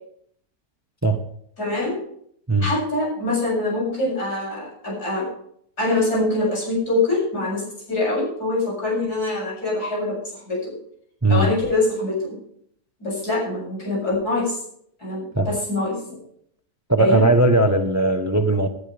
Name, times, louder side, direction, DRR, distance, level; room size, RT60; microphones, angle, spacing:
voice 1, 1.6-2.0 2.6-5.3 5.8-7.6 7.9-10.1 10.5-10.7 11.3-12.3 13.0-14.6 15.0-16.2 17.0-17.2, left 2 dB, 90° left, -4 dB, 8.4 m, -24 dB
voice 2, 11.2-11.6 15.3-15.5 16.9-18.7, right 2 dB, 15° right, 7 dB, 0.9 m, -19 dB
19.0 x 12.0 x 3.5 m, 0.67 s
omnidirectional pair, 1.6 m